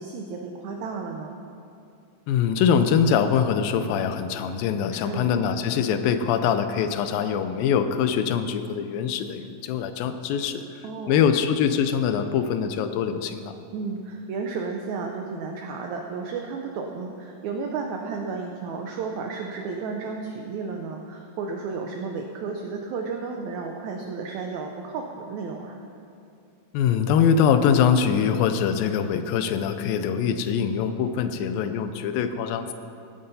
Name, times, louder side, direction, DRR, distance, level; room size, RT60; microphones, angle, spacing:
voice 1, 0.0-1.4 4.9-5.3 10.8-11.2 13.7-25.8, right 4 dB, 75° right, 2 dB, 1.7 m, -33 dB
voice 2, 2.3-10.6 11.1-13.5 26.7-32.7, left 7 dB, 85° left, 9 dB, 2.4 m, -23 dB
16.5 x 9.2 x 4.1 m, 2.6 s
omnidirectional pair, 4.1 m